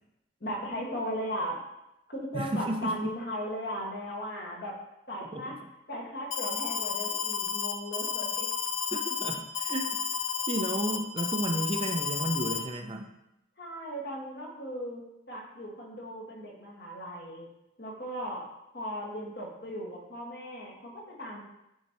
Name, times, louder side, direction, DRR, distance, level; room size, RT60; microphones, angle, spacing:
voice 1, 0.4-1.6 2.1-4.7 5.1-5.5 5.9-8.5 13.6-15.0 15.3-17.5 17.8-18.5 18.7-21.4, equal, 55° left, -2 dB, 1.6 m, -37 dB
voice 2, 2.3-3.2 5.3-5.4 8.9-10.0 10.5-13.1, right 1 dB, 25° right, 4 dB, 0.4 m, -32 dB
Alarm, 6.3-12.6, left 7 dB, 80° left, 0.6 m, -32 dB
10.0 x 4.4 x 2.9 m, 0.88 s
head